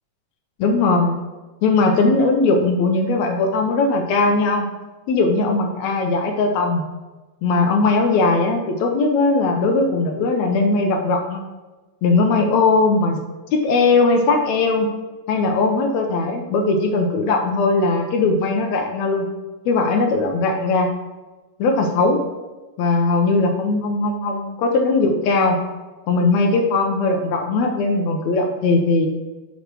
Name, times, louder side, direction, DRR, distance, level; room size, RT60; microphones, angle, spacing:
voice 1, 0.6-1.1 1.6-4.6 5.1-6.8 7.4-11.4 12.0-13.2 13.5-14.9 15.3-19.3 19.6-20.9 21.6-22.2 22.8-25.6 26.1-29.1, left 3 dB, 80° left, 3 dB, 1.6 m, -19 dB
8.3 x 3.1 x 6.0 m, 1.2 s
omnidirectional pair, 3.9 m